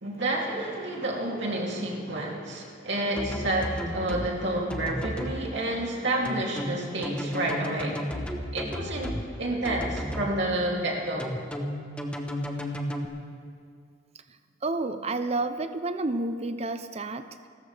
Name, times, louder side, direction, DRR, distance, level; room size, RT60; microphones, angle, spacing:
voice 1, 0.0-8.0 8.5-11.3, right 1 dB, 60° right, -2 dB, 2.9 m, -29 dB
sound 1, 3.2-4.3 4.7-5.4 6.2-9.2 9.6-10.3 11.2-13.0, equal, 5° left, 1.0 m, -33 dB
voice 2, 14.6-17.3, right 2 dB, 30° right, 10 dB, 0.6 m, -30 dB
29.0 x 14.0 x 3.4 m, 2.2 s
head